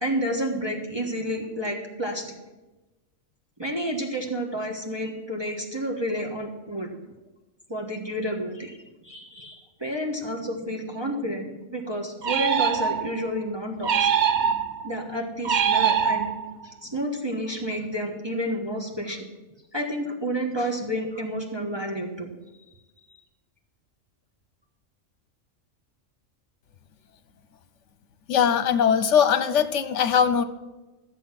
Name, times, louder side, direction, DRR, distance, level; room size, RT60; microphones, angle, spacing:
voice 1, 0.0-2.3 3.6-6.9 7.7-8.8 9.0-11.4 11.7-14.1 14.8-16.3 16.8-19.3 19.7-22.3, equal, 20° right, 0 dB, 1.3 m, -30 dB
sound 1, 12.2-13.3 13.8-14.9 15.4-16.6, right 7 dB, 50° right, 0.6 m, -23 dB
voice 2, 28.3-30.4, left 8 dB, 70° left, 11 dB, 1.1 m, -21 dB
14.0 x 7.6 x 5.9 m, 1.1 s
omnidirectional pair, 1.3 m